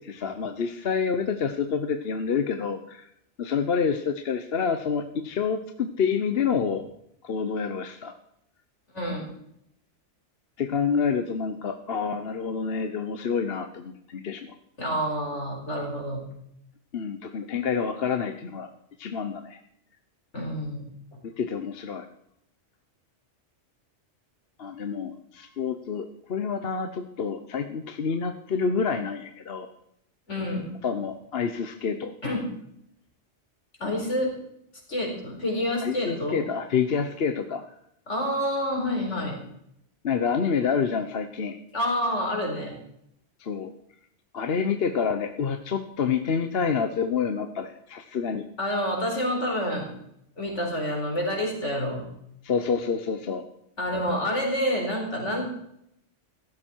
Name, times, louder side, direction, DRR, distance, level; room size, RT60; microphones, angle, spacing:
voice 1, 0.0-3.1 3.4-6.8 7.2-8.1 10.6-14.5 16.9-18.7 19.0-19.6 21.2-22.1 24.6-29.7 30.8-32.2 35.8-37.6 40.0-41.6 43.4-43.7 44.3-48.4 52.4-53.4, left 6 dB, 55° left, 7 dB, 1.1 m, -28 dB
voice 2, 8.9-9.2 14.8-16.3 20.3-21.2 30.3-30.7 32.2-32.5 33.8-34.3 34.9-36.4 37.0-37.1 38.1-39.4 41.7-42.7 48.6-49.9 50.4-52.0 53.8-55.5, equal, 75° left, 0 dB, 5.0 m, -28 dB
15.5 x 13.0 x 4.5 m, 0.75 s
omnidirectional pair, 1.2 m